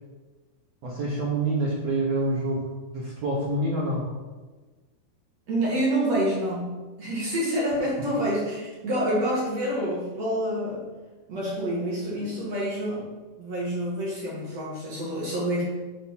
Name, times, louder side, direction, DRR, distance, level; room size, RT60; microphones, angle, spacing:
voice 1, 0.8-4.0, right 2 dB, 75° right, -5 dB, 1.5 m, -27 dB
voice 2, 5.5-10.8 11.3-13.1 13.4-15.6, right 1 dB, 50° right, -6 dB, 2.3 m, -27 dB
7.8 x 4.8 x 5.9 m, 1.3 s
omnidirectional pair, 4.8 m